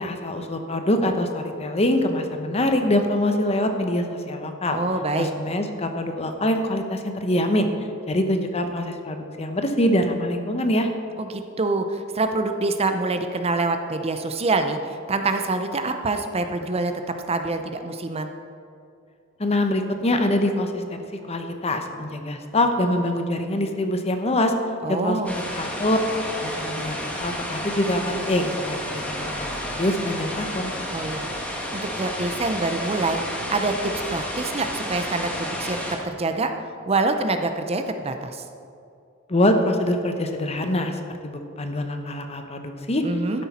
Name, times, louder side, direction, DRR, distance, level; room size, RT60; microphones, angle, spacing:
voice 1, 0.0-4.8 5.2-7.7 8.1-10.9 19.4-24.5 25.0-26.0 26.4-30.7 39.3-43.0, left 1 dB, 30° left, 6 dB, 0.9 m, -24 dB
voice 2, 4.7-5.3 11.2-16.9 17.3-18.3 24.8-25.4 30.9-31.3 31.7-35.8 36.0-38.4 43.0-43.4, right 3 dB, 30° right, 7 dB, 0.6 m, -26 dB
sound 1, 25.3-36.0, equal, 5° left, 1.5 m, -31 dB
12.0 x 10.0 x 4.2 m, 2.5 s
head